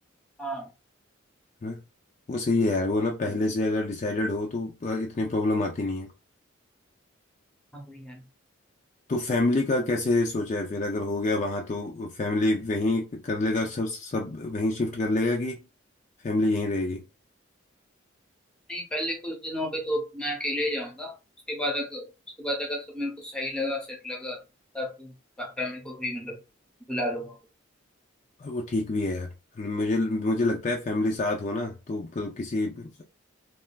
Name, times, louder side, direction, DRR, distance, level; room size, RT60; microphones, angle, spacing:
voice 1, 0.4-0.7 3.2-3.3 7.7-8.2 18.7-21.1 21.5-22.1 22.4-24.4 24.7-26.4 26.9-27.4, equal, 5° left, 0.7 m, -32 dB
voice 2, 2.3-6.1 9.1-15.6 16.2-17.0 28.4-29.3 29.6-33.0, left 2 dB, 35° left, 0.4 m, -27 dB
3.2 x 2.4 x 2.2 m
head